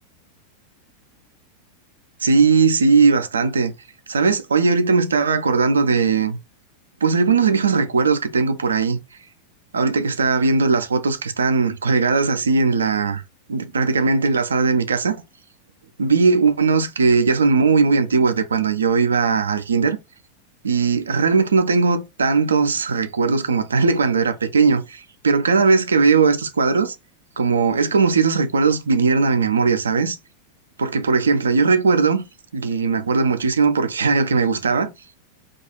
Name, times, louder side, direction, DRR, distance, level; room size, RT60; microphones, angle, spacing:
voice 1, 2.2-3.7 4.1-6.4 7.0-9.0 9.7-13.2 13.5-15.2 16.0-20.0 20.6-27.0 27.4-30.2 30.8-32.2 32.5-34.9, right 4 dB, 70° right, 0.4 m, -18 dB
2.3 x 2.3 x 3.0 m
figure-of-eight pair, 90°, 0 cm